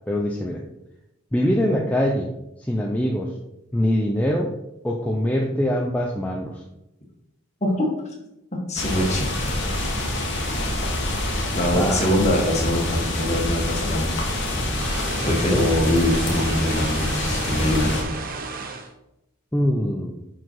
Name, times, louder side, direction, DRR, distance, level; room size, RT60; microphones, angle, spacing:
voice 1, 0.1-0.6 1.3-2.3 2.6-3.4 3.7-4.5 4.8-6.6 11.7-12.1 15.3-15.7 19.5-20.2, equal, 5° left, -1 dB, 0.5 m, -23 dB
voice 2, 8.7-9.7 11.5-14.7 15.2-17.9, left 1 dB, 30° left, -1 dB, 1.6 m, -23 dB
sound 1, 8.8-18.0, left 1 dB, 55° left, 1.3 m, -26 dB
sound 2, 14.8-18.9, right 4 dB, 40° right, 0.7 m, -33 dB
5.8 x 4.9 x 4.6 m, 0.88 s
head